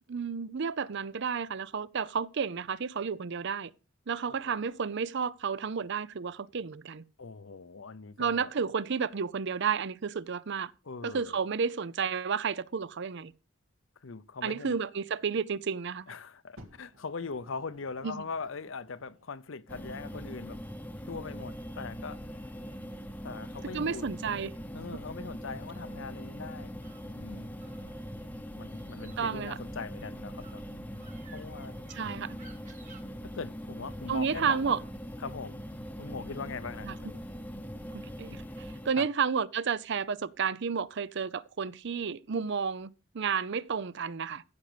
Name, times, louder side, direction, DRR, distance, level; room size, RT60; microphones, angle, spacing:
voice 1, 0.1-3.7 4.1-7.0 8.2-10.7 11.0-13.3 14.4-16.1 18.0-18.3 23.7-24.5 29.2-29.6 31.9-32.4 34.1-34.8 36.8-37.0 37.9-44.4, right 6 dB, 60° right, 0.6 m, -31 dB
voice 2, 7.2-8.5 10.8-11.4 14.0-14.8 16.1-20.6 21.0-22.4 23.2-24.1 24.7-26.7 27.1-27.8 28.6-30.6 31.3-31.7 32.0-32.4 33.2-34.8 35.2-35.6 36.0-37.3 39.0-39.1, left 4 dB, 70° left, 0.7 m, -41 dB
Fire, 16.6-19.4 20.2-20.3, equal, 85° right, 2.3 m, -56 dB
sound 1, 19.7-38.9, equal, 10° left, 0.8 m, -42 dB
sound 2, 21.9-22.7 25.4-27.1 27.5-28.2 28.6-33.0, right 5 dB, 40° right, 1.9 m, -58 dB
15.0 x 6.5 x 5.0 m
head